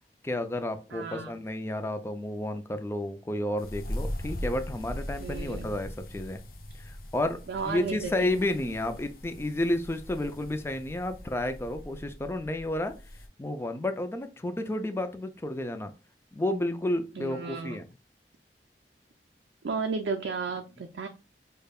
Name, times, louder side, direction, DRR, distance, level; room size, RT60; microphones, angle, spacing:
voice 1, 0.2-6.4 6.8-7.4 7.7-13.0 13.4-15.9 16.3-17.9, left 1 dB, 15° left, 8 dB, 0.4 m, -31 dB
voice 2, 0.9-1.3 5.2-5.7 7.5-8.4 17.1-17.8 19.6-21.1, right 4 dB, 85° right, 4 dB, 0.4 m, -34 dB
sound 1, 3.6-13.3, equal, 55° left, 0.6 m, -40 dB
5.1 x 2.2 x 2.3 m, 0.29 s
head